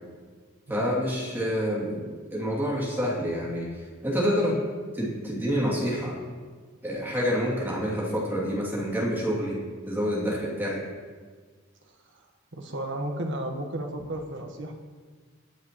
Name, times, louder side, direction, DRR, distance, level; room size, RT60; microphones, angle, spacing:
voice 1, 0.7-3.7 4.0-4.5 4.9-6.1 6.8-9.6 9.9-10.8, equal, 10° right, -6 dB, 2.8 m, -27 dB
voice 2, 12.5-14.7, right 1 dB, 60° right, 2 dB, 1.4 m, -33 dB
20.0 x 7.4 x 3.1 m, 1.5 s
head